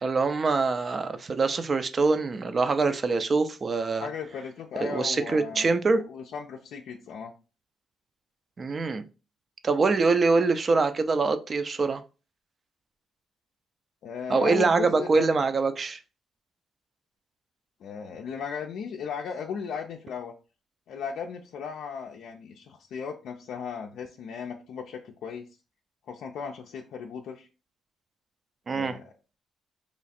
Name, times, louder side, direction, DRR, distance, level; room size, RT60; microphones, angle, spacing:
voice 1, 0.0-4.1 4.9-6.0 8.6-9.0 9.6-12.0 14.3-16.0 28.7-29.0, right 4 dB, 40° right, 0.4 m, -24 dB
voice 2, 4.0-7.3 14.0-15.4 17.8-20.3 20.9-25.5 26.1-27.5 28.7-29.1, left 6 dB, 75° left, 0.4 m, -36 dB
3.0 x 2.4 x 4.1 m
cardioid pair, 90°, 0 cm